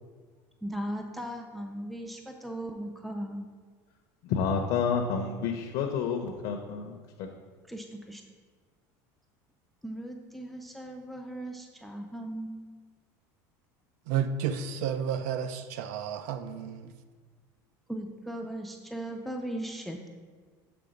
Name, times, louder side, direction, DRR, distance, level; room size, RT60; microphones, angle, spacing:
voice 1, 0.6-3.4 7.7-8.2 9.8-12.6 17.9-20.1, right 1 dB, ahead, 4 dB, 0.3 m, -38 dB
voice 2, 4.2-7.3, left 6 dB, 55° left, 3 dB, 0.5 m, -29 dB
voice 3, 14.1-16.9, right 8 dB, 85° right, 10 dB, 0.4 m, -31 dB
6.8 x 3.4 x 5.1 m, 1.5 s
cardioid pair, 165°, 9 cm